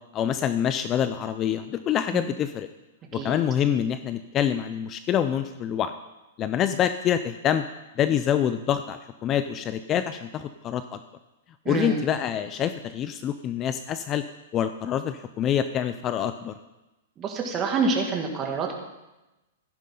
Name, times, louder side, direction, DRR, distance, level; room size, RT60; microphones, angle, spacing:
voice 1, 0.1-2.7 3.1-5.9 6.4-7.6 8.0-11.0 11.7-14.2 14.5-16.6, left 9 dB, 25° left, 11 dB, 0.4 m, -26 dB
voice 2, 11.6-12.0 17.2-18.7, right 4 dB, 25° right, 1 dB, 2.1 m, -27 dB
15.0 x 11.0 x 3.8 m, 1.0 s
hypercardioid pair, 150°, 0 cm